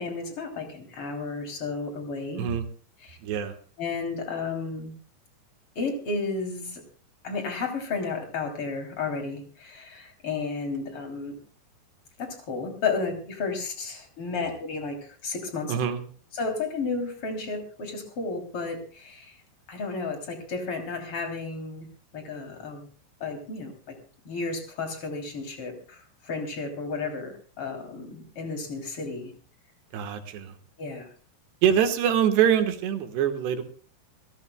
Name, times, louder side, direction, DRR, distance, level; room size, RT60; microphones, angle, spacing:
voice 1, 0.0-2.5 3.0-3.2 3.8-4.9 5.8-6.8 7.2-11.4 12.2-15.8 16.3-19.3 19.7-21.9 22.1-22.9 23.2-24.0 24.3-29.3 30.8-31.1, left 4 dB, 35° left, 4 dB, 3.6 m, -32 dB
voice 2, 3.2-3.5 15.7-16.0 29.9-30.5 31.6-33.6, right 9 dB, 80° right, 7 dB, 3.5 m, -24 dB
27.5 x 15.0 x 2.3 m, 0.40 s
omnidirectional pair, 4.9 m